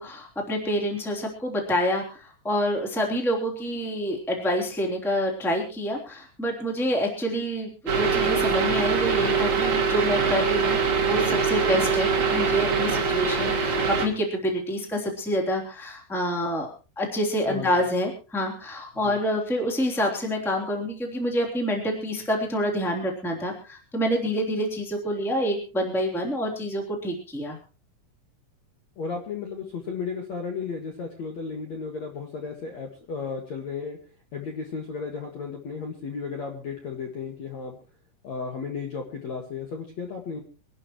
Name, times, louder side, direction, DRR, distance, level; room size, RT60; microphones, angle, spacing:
voice 1, 0.0-16.7 17.0-27.6, equal, ahead, 1 dB, 1.8 m, -27 dB
sound 1, 7.9-14.1, right 5 dB, 55° right, 1.4 m, -23 dB
voice 2, 29.0-34.0 34.3-37.8 38.2-40.4, left 5 dB, 60° left, 2 dB, 1.8 m, -34 dB
25.0 x 11.5 x 3.1 m, 0.34 s
omnidirectional pair, 5.9 m